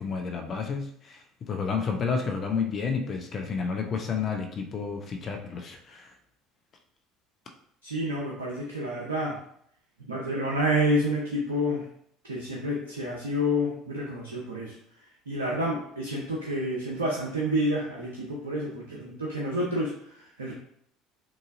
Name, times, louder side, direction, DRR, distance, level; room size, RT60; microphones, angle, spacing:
voice 1, 0.0-6.1, left 5 dB, 40° left, 4 dB, 0.6 m, -31 dB
voice 2, 7.8-9.4 10.1-11.9 12.2-14.8 15.3-20.5, equal, 90° right, -3 dB, 0.6 m, -29 dB
3.8 x 2.7 x 2.6 m, 0.69 s
hypercardioid pair, 65°, 0 cm